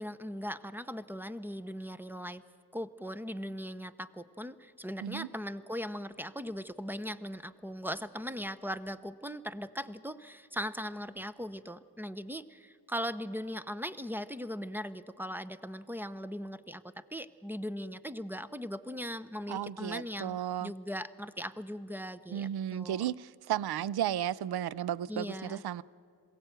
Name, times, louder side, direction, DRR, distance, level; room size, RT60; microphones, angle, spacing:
voice 1, 0.0-2.4 2.7-23.0 25.1-25.6, equal, 5° right, 0.6 m, -39 dB
voice 2, 19.5-20.7 22.3-25.8, right 11 dB, 75° right, 0.5 m, -34 dB
21.5 x 16.0 x 8.9 m
cardioid pair, 90°, 39 cm